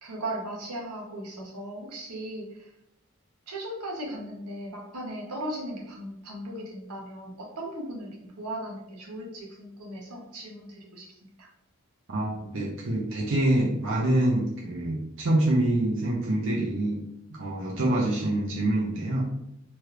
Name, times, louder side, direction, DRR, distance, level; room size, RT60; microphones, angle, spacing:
voice 1, 0.0-2.7 3.5-11.5, right 1 dB, 90° right, -2 dB, 0.9 m, -37 dB
voice 2, 12.1-17.0 17.3-19.2, right 1 dB, 55° right, -4 dB, 0.5 m, -26 dB
3.0 x 2.4 x 3.2 m, 0.82 s
head